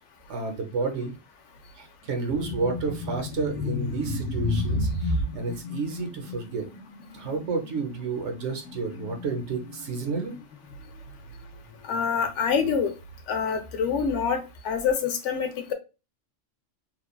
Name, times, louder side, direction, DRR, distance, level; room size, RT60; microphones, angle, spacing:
voice 1, 0.3-1.1 1.8-6.7 7.1-10.4, right 4 dB, 65° right, 4 dB, 1.0 m, -31 dB
sound 1, 2.3-12.3 12.5-12.8 13.6-14.6, left 2 dB, 40° left, 0.7 m, -33 dB
voice 2, 11.9-12.9 13.3-15.7, left 6 dB, 70° left, 7 dB, 0.9 m, -26 dB
3.0 x 2.3 x 2.2 m, 0.28 s
omnidirectional pair, 1.3 m